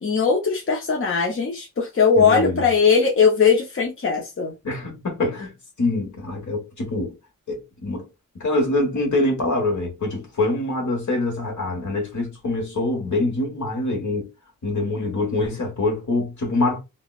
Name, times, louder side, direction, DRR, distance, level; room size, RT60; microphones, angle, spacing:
voice 1, 0.0-4.5, left 5 dB, 40° left, 0.6 m, -19 dB
voice 2, 2.1-2.7 4.6-5.5 5.8-7.1 7.5-8.0 8.4-14.3 14.6-16.8, left 2 dB, 60° left, 1.4 m, -24 dB
3.5 x 2.1 x 2.4 m
cardioid pair, 50°, 33 cm